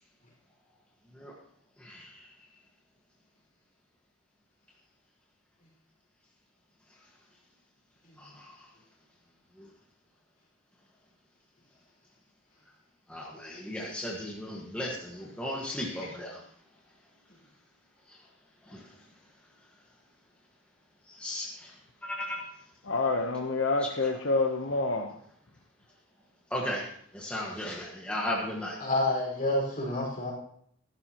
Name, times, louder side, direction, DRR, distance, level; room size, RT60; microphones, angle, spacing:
voice 1, 1.8-2.3 8.2-8.7 9.5-9.7 13.1-16.4 18.1-18.3 18.6-19.1 21.0-22.4 26.5-28.8, left 1 dB, 5° left, -3 dB, 1.5 m, -36 dB
voice 2, 22.8-25.2, left 3 dB, 70° left, 3 dB, 0.9 m, -28 dB
voice 3, 28.8-30.3, left 2 dB, 40° left, -3 dB, 5.0 m, -28 dB
14.5 x 12.0 x 3.0 m, 0.64 s
head